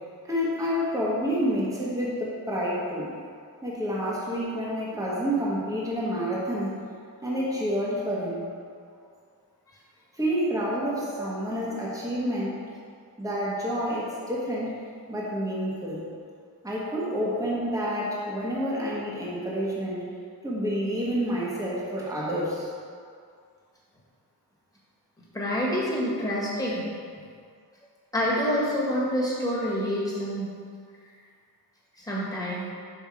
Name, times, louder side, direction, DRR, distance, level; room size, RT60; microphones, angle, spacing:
voice 1, 0.2-3.1 3.6-6.8 7.2-8.5 10.1-12.6 13.2-14.7 15.1-16.0 16.6-20.1 20.4-22.7, equal, 10° right, -6 dB, 1.3 m, -28 dB
voice 2, 25.3-26.8 28.1-30.5 32.0-32.7, equal, 10° left, -7 dB, 1.7 m, -27 dB
5.7 x 5.4 x 4.8 m, 2.2 s
wide cardioid pair, 130°, 38 cm